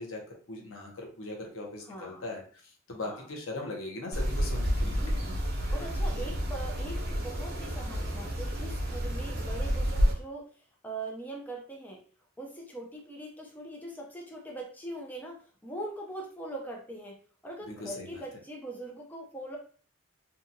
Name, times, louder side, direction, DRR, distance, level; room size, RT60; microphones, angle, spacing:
voice 1, 0.0-5.0 5.6-6.4 17.7-18.2, left 2 dB, 80° left, 1 dB, 0.8 m, -40 dB
voice 2, 1.9-2.2 3.0-3.3 4.8-5.2 5.7-10.5 10.8-12.0 12.4-17.2 17.4-19.6, right 1 dB, 10° left, -1 dB, 0.4 m, -41 dB
sound 1, 4.1-10.1, equal, 50° right, 0.7 m, -30 dB
2.8 x 2.3 x 2.6 m, 0.41 s
head